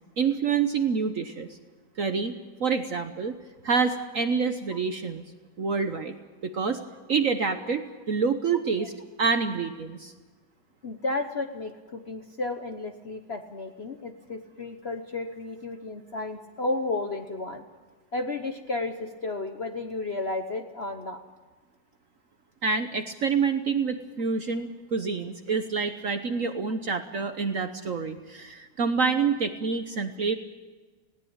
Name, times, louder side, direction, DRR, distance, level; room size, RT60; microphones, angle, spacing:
voice 1, 0.2-1.5 2.0-3.4 3.6-5.2 5.6-6.1 6.4-6.8 7.1-8.9 9.2-10.1 22.6-30.3, right 5 dB, 50° right, 8 dB, 1.1 m, -27 dB
voice 2, 10.8-17.6 18.1-21.2, left 2 dB, 40° left, 6 dB, 0.9 m, -33 dB
20.0 x 17.5 x 8.8 m, 1.3 s
omnidirectional pair, 2.2 m